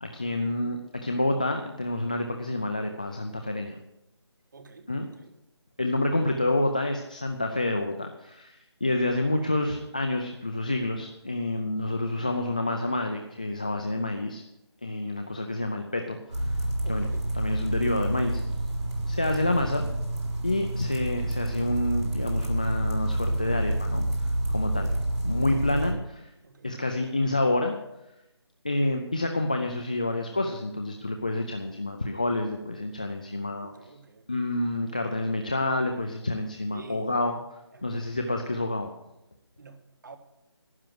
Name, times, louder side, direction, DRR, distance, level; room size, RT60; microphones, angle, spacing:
voice 1, 0.0-3.8 4.9-5.1 5.8-14.4 14.8-17.1 17.3-18.4 19.1-19.9 20.4-24.9 25.2-26.3 26.6-27.7 28.6-33.7 34.3-37.4 37.8-38.9, left 2 dB, 15° left, 4 dB, 0.4 m, -28 dB
voice 2, 4.5-4.9 5.2-5.4 11.5-11.7 16.8-17.3 26.4-26.7 33.6-34.5 36.7-37.1 37.7-38.0 39.6-40.2, right 3 dB, 45° right, 8 dB, 1.4 m, -48 dB
sound 1, 16.3-25.9, right 1 dB, 80° right, 3.9 m, -28 dB
12.0 x 9.0 x 7.6 m, 0.89 s
figure-of-eight pair, 175°, 14 cm